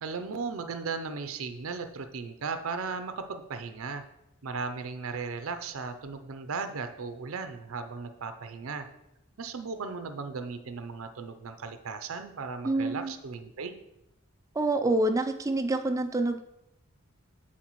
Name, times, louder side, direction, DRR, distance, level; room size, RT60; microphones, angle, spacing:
voice 1, 0.0-4.0 4.4-8.9 9.4-13.7, right 4 dB, 75° right, 8 dB, 0.5 m, -36 dB
voice 2, 12.6-13.1 14.6-16.4, right 2 dB, 15° right, 7 dB, 0.4 m, -27 dB
11.5 x 4.3 x 3.0 m, 0.85 s
head